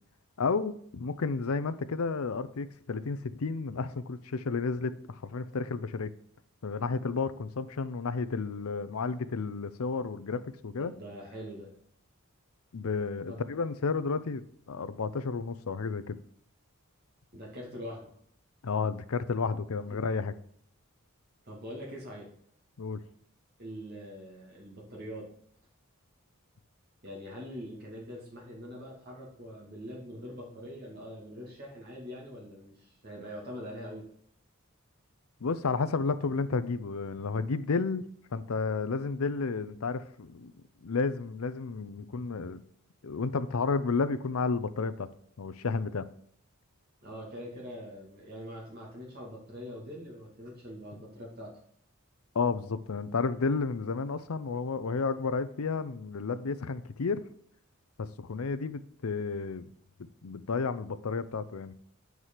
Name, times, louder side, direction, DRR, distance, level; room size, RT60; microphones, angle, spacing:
voice 1, 0.4-6.1 6.6-10.9 12.7-16.2 18.6-20.3 22.8-23.0 35.4-38.0 38.3-40.5 40.8-42.6 43.0-45.1 45.4-46.0 52.3-57.2 58.2-59.7 60.2-61.7, left 4 dB, 75° left, 13 dB, 0.6 m, -32 dB
voice 2, 10.8-11.7 13.3-13.4 17.3-18.1 19.9-20.0 21.4-22.3 23.6-25.3 27.0-34.0 47.0-51.6, equal, 50° right, -3 dB, 2.4 m, -43 dB
8.1 x 4.8 x 5.7 m, 0.65 s
head